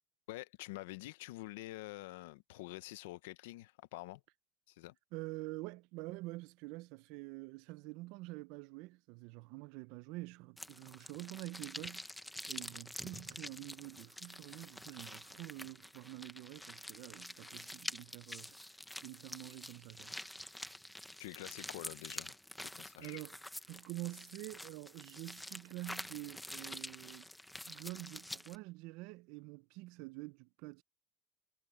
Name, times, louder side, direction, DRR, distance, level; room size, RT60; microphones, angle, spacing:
voice 1, 0.3-4.2 4.7-5.0 21.2-23.2, left 19 dB, 90° left, 0.8 m, -47 dB
voice 2, 5.1-12.2 12.5-18.6 19.0-20.2 23.0-23.4 23.7-27.3 27.7-30.8, right 22 dB, 70° right, 0.7 m, -47 dB
sound 1, 10.6-28.6, left 1 dB, 5° left, 1.1 m, -47 dB
supercardioid pair, 110°, 0 cm